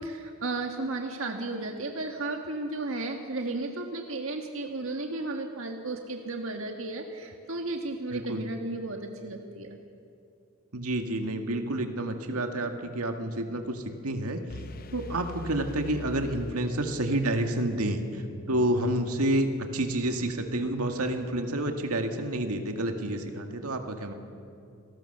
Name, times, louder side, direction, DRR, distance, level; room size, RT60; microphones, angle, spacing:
voice 1, 0.0-9.8, right 2 dB, 65° right, 3 dB, 1.6 m, -34 dB
voice 2, 8.1-8.4 10.7-14.4 14.9-19.5 19.7-24.1, right 1 dB, 85° right, 5 dB, 2.0 m, -29 dB
sound 1, 14.5-17.4, left 3 dB, 40° left, 0.6 m, -42 dB
28.5 x 19.0 x 6.8 m, 2.5 s
head